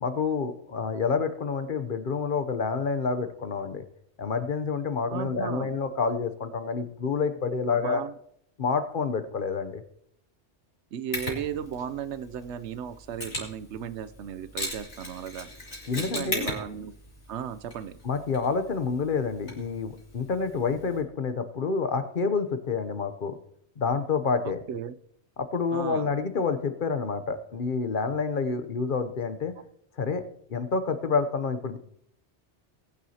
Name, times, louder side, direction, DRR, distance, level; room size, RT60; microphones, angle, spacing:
voice 1, 0.0-3.8 4.2-8.0 8.6-9.8 15.9-16.5 18.0-23.4 23.8-24.6 25.4-29.5 30.0-30.2 30.5-31.8, left 5 dB, 50° left, 10 dB, 0.8 m, -28 dB
voice 2, 5.1-5.7 7.7-8.1 10.9-15.5 16.0-16.9 17.3-18.0 24.4-24.9 25.7-26.1, right 8 dB, 75° right, 14 dB, 0.9 m, -35 dB
Mechanisms, 11.1-21.0, left 1 dB, 70° left, 3.0 m, -39 dB
20.0 x 9.3 x 2.8 m, 0.72 s
omnidirectional pair, 1.2 m